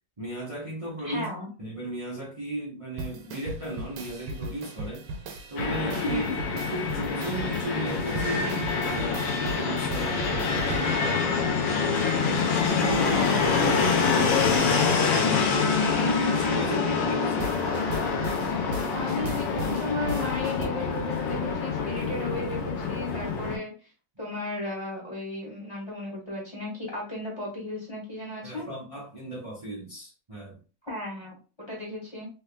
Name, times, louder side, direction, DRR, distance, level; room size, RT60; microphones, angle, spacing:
voice 1, 0.2-1.3 1.6-5.1 5.5-6.3 6.7-9.2 9.5-11.5 12.4-13.2 13.5-15.5 16.0-17.5 28.4-30.6, right 1 dB, 40° right, -6 dB, 0.4 m, -35 dB
voice 2, 1.0-1.5 6.0-6.3 13.0-13.7 15.3-15.4 18.9-23.9 24.2-28.7 30.8-32.3, left 2 dB, 15° left, -3 dB, 1.2 m, -35 dB
sound 1, 3.0-12.2 17.4-20.7, right 2 dB, 70° right, 1.2 m, -38 dB
Fixed-wing aircraft airplane, 5.6-23.6, left 5 dB, 75° left, 1.5 m, -26 dB
3.4 x 3.4 x 2.2 m, 0.35 s
omnidirectional pair, 2.1 m